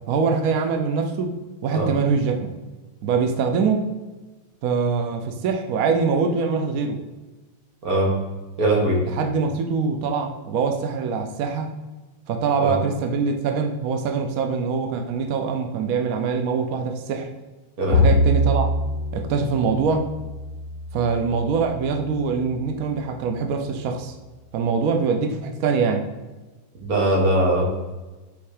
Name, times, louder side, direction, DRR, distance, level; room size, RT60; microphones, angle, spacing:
voice 1, 0.1-1.4 1.6-2.5 3.0-3.9 4.6-7.0 9.1-11.7 12.3-17.3 17.9-18.7 19.1-20.1 20.9-24.1 24.5-26.1, right 5 dB, 75° right, 5 dB, 0.8 m, -23 dB
voice 2, 8.6-9.0 12.6-12.8 17.8-18.1 26.8-27.6, right 1 dB, 45° right, -2 dB, 2.0 m, -20 dB
Bowed string instrument, 17.9-22.3, left 1 dB, 90° left, 1.6 m, -25 dB
5.4 x 4.4 x 4.9 m, 1.2 s
omnidirectional pair, 2.3 m